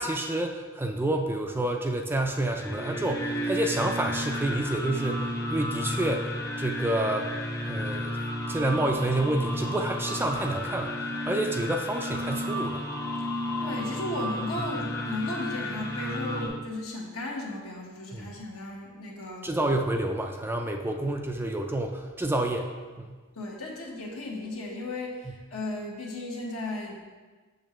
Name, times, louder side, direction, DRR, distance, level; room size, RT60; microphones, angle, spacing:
voice 1, 0.0-6.3 6.6-7.3 7.7-8.2 8.5-10.9 11.3-12.8 18.1-18.3 19.4-22.7 23.0-23.1 25.3-25.4, right 1 dB, 10° right, 3 dB, 0.3 m, -28 dB
sound 1, 2.3-16.5, left 1 dB, 15° left, 0.7 m, -32 dB
voice 2, 13.6-19.5 23.3-26.9, left 2 dB, 70° left, -2 dB, 1.3 m, -35 dB
6.6 x 6.5 x 3.1 m, 1.4 s
head